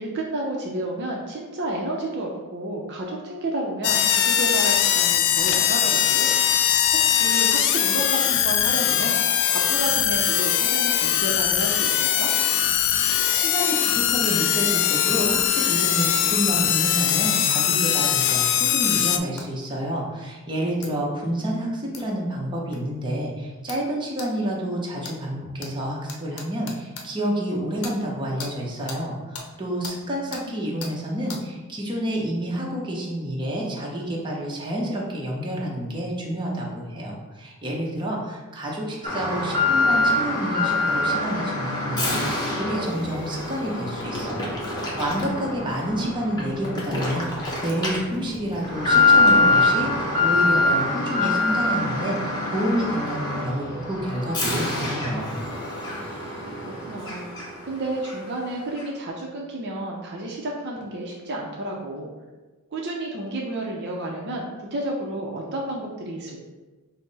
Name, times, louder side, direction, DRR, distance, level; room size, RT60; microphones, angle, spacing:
voice 1, 0.0-6.3 7.0-9.2 9.5-12.3 30.2-30.6 46.0-46.2 56.6-62.1 62.7-66.4, right 1 dB, 55° right, -1 dB, 0.6 m, -31 dB
sound 1, 3.8-19.2, left 10 dB, 55° left, 0.3 m, -21 dB
voice 2, 13.1-55.4, equal, 20° right, -3 dB, 0.8 m, -29 dB
sound 2, 17.1-17.2 18.0-18.4 19.4-19.5 20.8-20.9 21.9-22.1 22.7-22.8 23.7-23.8 24.2-24.3 25.0-25.2 25.6-25.7 26.1-27.1 27.8-28.0 28.4-28.5 28.9-29.0 29.3-29.5 29.8-30.0 30.3-30.4 30.8-30.9 31.3-31.4, left 4 dB, 75° left, 0.7 m, -37 dB
Alarm, 39.0-57.7 58.0-58.1 58.8-58.9, left 3 dB, 20° left, 0.9 m, -24 dB
5.6 x 2.0 x 4.0 m, 1.2 s
head